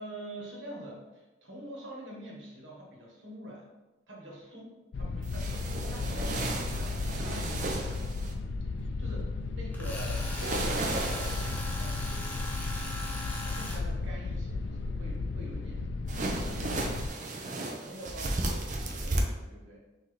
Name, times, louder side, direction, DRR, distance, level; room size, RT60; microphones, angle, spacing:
voice 1, 0.0-3.6 4.1-8.1 8.7-12.5 13.4-17.2 17.6-19.8, right 1 dB, 75° right, -3 dB, 1.3 m, -45 dB
sound 1, 4.9-17.1, left 3 dB, 70° left, 0.4 m, -34 dB
sound 2, 5.2-8.3 10.3-11.8 16.1-19.2, right 2 dB, 40° right, 0.5 m, -34 dB
Tools, 9.7-13.8, left 1 dB, 10° left, 0.6 m, -39 dB
5.8 x 2.7 x 3.3 m, 1.1 s
head